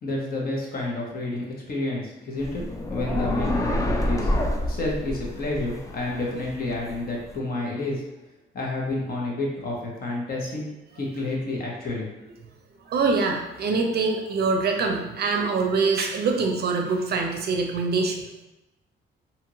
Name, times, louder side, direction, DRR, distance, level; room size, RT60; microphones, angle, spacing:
voice 1, 0.0-2.6 2.9-4.3 4.7-8.0 8.5-10.7 11.0-12.1, left 2 dB, 50° left, -2 dB, 0.9 m, -29 dB
sound 1, 2.4-7.3, left 1 dB, 15° left, 0.3 m, -28 dB
voice 2, 12.9-18.3, right 4 dB, 55° right, 2 dB, 0.5 m, -24 dB
2.8 x 2.4 x 2.9 m, 0.98 s
cardioid pair, 90°, 20 cm